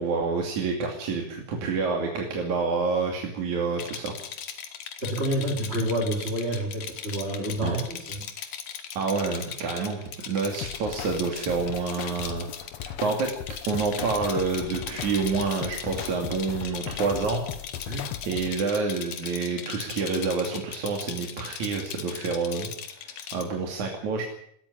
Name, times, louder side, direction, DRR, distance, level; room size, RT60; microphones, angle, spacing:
voice 1, 0.0-4.1 7.6-7.8 9.0-12.5 12.8-13.3 13.7-17.4 18.3-22.7 23.0-24.2, right 4 dB, 75° right, 2 dB, 4.1 m, -28 dB
Rattle, 3.7-23.4, left 8 dB, 90° left, 3.4 m, -39 dB
voice 2, 5.0-8.2 17.9-18.0, right 1 dB, 20° right, 0 dB, 3.7 m, -28 dB
sound 1, 10.5-18.5, left 10 dB, 70° left, 2.0 m, -38 dB
19.0 x 13.5 x 10.0 m, 0.71 s
omnidirectional pair, 3.4 m